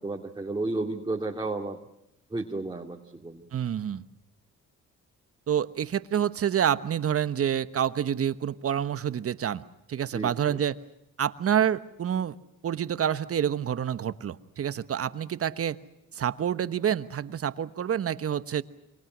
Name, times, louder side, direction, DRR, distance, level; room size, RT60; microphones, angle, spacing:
voice 1, 0.0-1.8 2.3-3.5 10.1-10.6, right 2 dB, 15° right, 1 dB, 2.3 m, -32 dB
voice 2, 3.5-4.0 5.5-9.6 9.9-10.8 11.2-12.3 12.6-15.8 16.1-18.6, right 9 dB, 50° right, 13 dB, 1.2 m, -28 dB
29.0 x 25.0 x 6.2 m, 0.86 s
cardioid pair, 90°, 30 cm